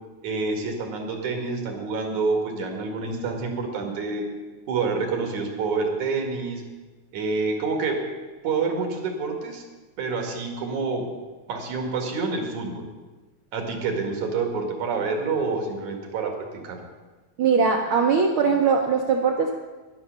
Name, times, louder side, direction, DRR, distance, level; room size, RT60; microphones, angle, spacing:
voice 1, 0.2-4.3 4.7-6.6 7.1-8.1 8.4-9.6 10.0-11.1 11.5-12.9 13.5-16.8, right 4 dB, 85° right, 3 dB, 3.3 m, -27 dB
voice 2, 17.4-19.6, right 5 dB, 70° right, 2 dB, 1.3 m, -21 dB
11.5 x 10.5 x 6.7 m, 1.2 s
omnidirectional pair, 3.3 m